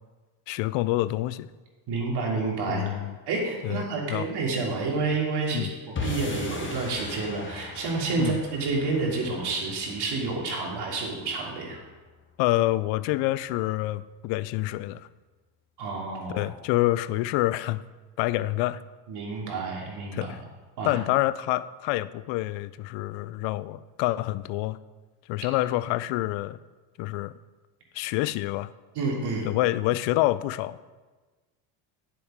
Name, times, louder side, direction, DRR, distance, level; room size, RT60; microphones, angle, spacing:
voice 1, 0.5-1.5 2.7-3.2 3.6-4.3 5.5-5.7 8.2-8.4 12.4-15.1 16.3-17.8 18.2-18.8 20.1-20.4 20.8-24.8 25.3-26.6 27.0-27.4 27.9-28.7 29.4-30.8, left 17 dB, 75° left, 17 dB, 0.6 m, -27 dB
voice 2, 1.9-2.9 3.3-5.7 6.0-11.8 15.8-16.4 19.1-20.3 20.8-20.9 28.9-29.5, right 3 dB, 60° right, -2 dB, 3.2 m, -29 dB
sound 1, 6.0-12.3, left 4 dB, 25° left, 1.6 m, -39 dB
10.0 x 7.6 x 5.1 m, 1.3 s
cardioid pair, 105°, 45 cm